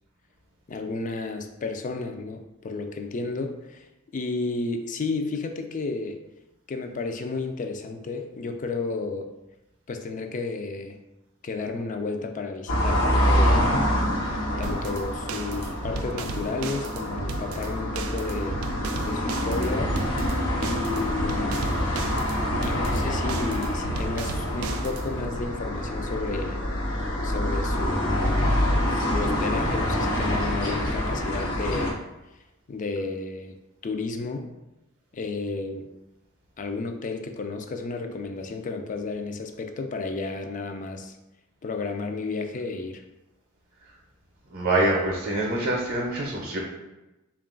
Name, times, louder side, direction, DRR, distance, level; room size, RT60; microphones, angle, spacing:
voice 1, 0.7-3.9 4.1-6.2 6.7-9.3 9.9-11.0 11.4-13.7 14.6-18.6 19.0-20.0 20.6-21.7 22.6-26.6 27.2-28.6 29.1-32.0 32.7-33.6 33.8-34.5 35.1-35.9 36.6-41.2 41.6-43.0, left 3 dB, 40° left, 6 dB, 0.4 m, -32 dB
sound 1, 12.7-31.9, equal, 75° left, 0.8 m, -26 dB
sound 2, 14.6-25.3, right 4 dB, 90° right, 0.3 m, -36 dB
voice 2, 44.5-46.6, right 1 dB, 45° right, -2 dB, 0.6 m, -25 dB
3.7 x 2.4 x 3.7 m, 1.0 s
head